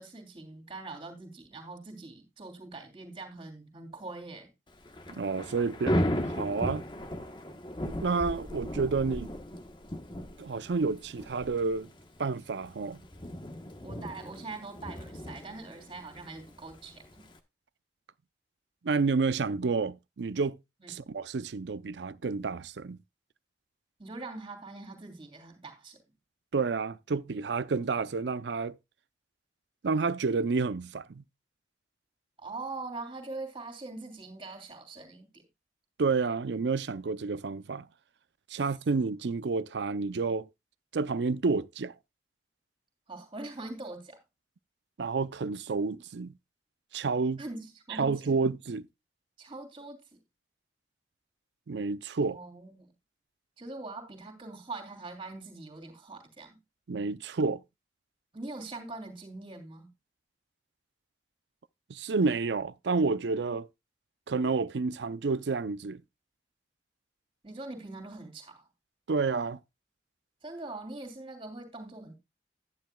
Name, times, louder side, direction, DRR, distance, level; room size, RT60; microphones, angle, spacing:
voice 1, 0.0-4.5 13.8-17.2 20.8-20.9 24.0-26.0 32.4-35.4 38.5-38.6 43.1-44.2 47.4-48.3 49.4-50.2 52.3-52.9 53.6-56.6 58.3-59.9 67.4-68.7 70.4-72.2, right 3 dB, 30° right, 3.1 m, -43 dB
Thunder / Rain, 4.7-17.4, equal, 25° left, 1.1 m, -36 dB
voice 2, 5.1-6.0 6.3-6.8 7.9-9.3 10.4-11.9 12.2-13.0 18.8-20.6 20.9-23.0 26.5-28.7 29.8-31.2 36.0-37.8 38.5-40.5 40.9-41.9 45.0-46.3 46.9-47.4 48.0-48.8 51.7-52.4 56.9-57.6 61.9-63.7 64.3-66.0 69.1-69.6, right 4 dB, 80° right, 0.5 m, -30 dB
11.5 x 10.5 x 2.2 m
head